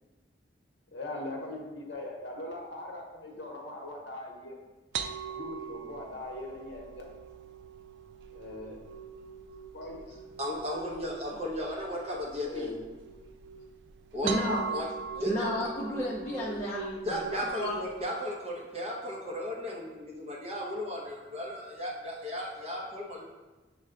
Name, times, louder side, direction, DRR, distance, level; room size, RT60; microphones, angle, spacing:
voice 1, 0.9-4.6 5.3-7.0 8.3-8.8 9.7-10.0 12.4-12.8, left 2 dB, 70° left, -1 dB, 0.8 m, -40 dB
sound 1, 4.9-18.0, right 6 dB, 80° right, 0.3 m, -41 dB
voice 2, 10.4-12.7 14.1-14.9 15.2-15.5 17.0-23.2, left 1 dB, 35° right, -3 dB, 0.8 m, -35 dB
voice 3, 14.2-14.6 15.2-17.2 17.6-17.8, equal, 10° left, -7 dB, 0.5 m, -32 dB
6.3 x 2.2 x 3.7 m, 1.2 s
head